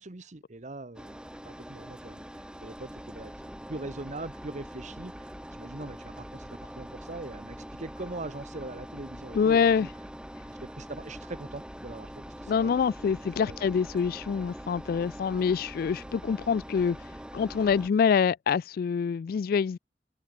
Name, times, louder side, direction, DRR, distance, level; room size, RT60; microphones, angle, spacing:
voice 1, 0.0-2.2 2.6-3.3 3.7-9.9 10.5-12.7 13.0-13.7, right 2 dB, 45° right, 1.1 m, -42 dB
Engine, 0.9-17.9, equal, 5° right, 4.1 m, -43 dB
voice 2, 9.3-9.9 12.5-19.8, left 6 dB, 55° left, 0.3 m, -26 dB
head